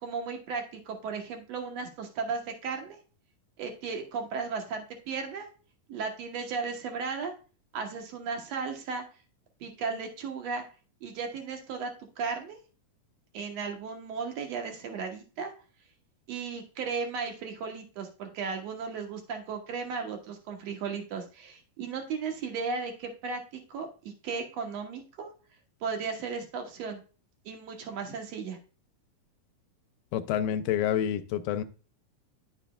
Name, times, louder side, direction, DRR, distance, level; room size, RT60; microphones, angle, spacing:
voice 1, 0.0-3.0 3.6-5.5 5.9-7.3 7.7-9.0 9.6-10.6 11.0-11.9 12.2-12.6 13.3-15.5 16.3-25.3 25.8-27.0 27.5-28.6, right 5 dB, 65° right, 4 dB, 1.8 m, -35 dB
voice 2, 30.1-31.6, left 10 dB, 80° left, 11 dB, 2.2 m, -28 dB
10.5 x 7.0 x 2.3 m, 0.35 s
omnidirectional pair, 4.1 m